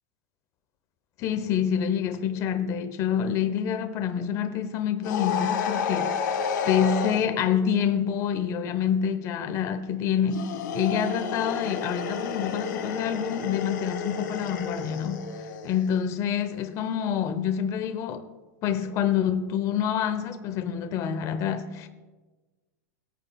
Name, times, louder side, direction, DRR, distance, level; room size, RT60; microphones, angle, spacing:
voice 1, 1.2-15.3 15.6-18.2 18.6-21.9, left 8 dB, 30° left, 0.8 m, -27 dB
sound 1, 5.0-7.3 10.3-15.9, left 6 dB, 85° left, 1.4 m, -31 dB
20.5 x 8.8 x 2.3 m
supercardioid pair, 155°, 10 cm